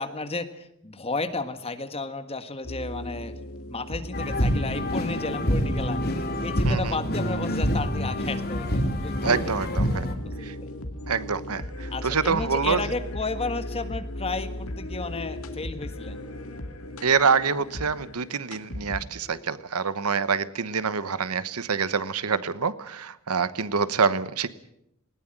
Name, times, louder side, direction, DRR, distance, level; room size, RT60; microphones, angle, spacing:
voice 1, 0.0-3.4 3.7-9.4 9.9-10.6 11.9-16.2, left 3 dB, 25° left, 9 dB, 1.6 m, -33 dB
sound 1, 2.6-19.4, left 1 dB, 70° left, 2.2 m, -37 dB
sound 2, 4.1-10.1, equal, 45° left, 2.9 m, -26 dB
voice 2, 9.2-10.1 10.4-10.5 11.1-12.8 17.0-24.5, right 5 dB, 90° right, 15 dB, 1.1 m, -26 dB
20.0 x 18.5 x 9.0 m, 0.80 s
head